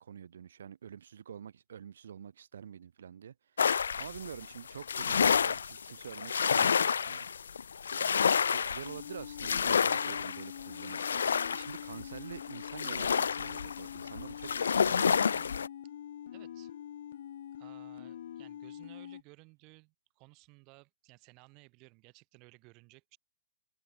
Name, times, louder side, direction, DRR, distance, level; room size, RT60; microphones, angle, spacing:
voice 1, 0.0-3.6 4.0-7.3 8.5-11.0 11.5-15.5, right 8 dB, 70° right, 6.1 m, -47 dB
sound 1, 3.6-15.7, left 6 dB, 85° left, 0.6 m, -29 dB
voice 2, 8.0-8.3 16.3-16.7 17.6-23.2, right 29 dB, 30° right, 7.6 m, -58 dB
sound 2, 8.8-19.2, left 10 dB, 60° left, 6.6 m, -45 dB
hypercardioid pair, 150°, 0 cm